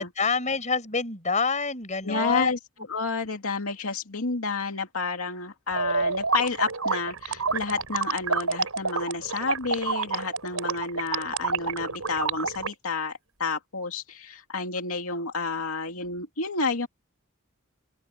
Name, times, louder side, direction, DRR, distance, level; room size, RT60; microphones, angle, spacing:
voice 1, 0.0-2.5, left 4 dB, 35° left, 6.3 m, -27 dB
voice 2, 2.0-2.6 2.9-16.9, left 4 dB, 85° left, 2.5 m, -30 dB
sound 1, 5.7-12.7, right 4 dB, 85° right, 5.1 m, -28 dB
open air
head